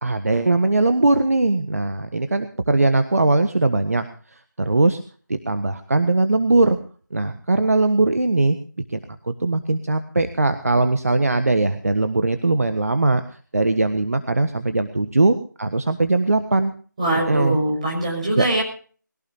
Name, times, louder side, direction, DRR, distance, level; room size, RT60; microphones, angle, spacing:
voice 1, 0.0-4.0 4.6-5.0 5.3-6.8 7.1-8.6 8.9-9.0 9.2-13.2 13.5-16.7 17.3-17.6 18.4-18.5, right 2 dB, 50° right, 9 dB, 1.4 m, -20 dB
voice 2, 17.0-18.6, right 1 dB, 20° right, -2 dB, 6.1 m, -22 dB
22.5 x 17.5 x 2.9 m, 0.42 s
figure-of-eight pair, 175°, 10 cm